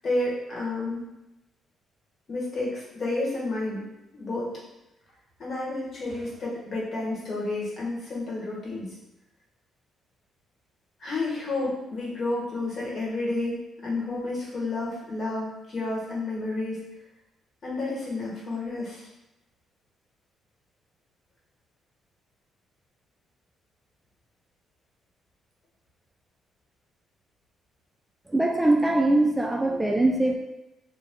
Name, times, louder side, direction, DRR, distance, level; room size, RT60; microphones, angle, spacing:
voice 1, 0.0-1.1 2.3-3.8 4.1-4.5 5.4-8.9 11.0-16.8 17.6-19.1, left 2 dB, 45° left, -5 dB, 1.2 m, -30 dB
voice 2, 28.3-30.4, right 2 dB, 10° right, 0 dB, 0.3 m, -22 dB
2.7 x 2.2 x 3.4 m, 0.92 s
cardioid pair, 90°, 0 cm